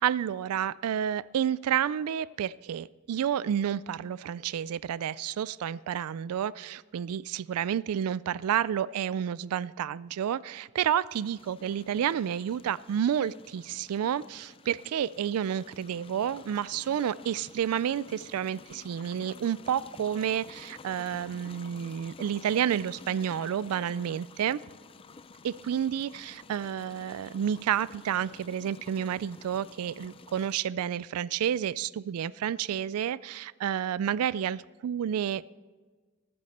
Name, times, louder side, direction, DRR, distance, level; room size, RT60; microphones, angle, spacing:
voice 1, 0.0-24.6 25.4-35.6, right 9 dB, 85° right, 20 dB, 0.3 m, -30 dB
sound 1, 11.1-30.6, left 4 dB, 25° left, 0.4 m, -51 dB
14.5 x 13.0 x 4.2 m, 1.4 s
head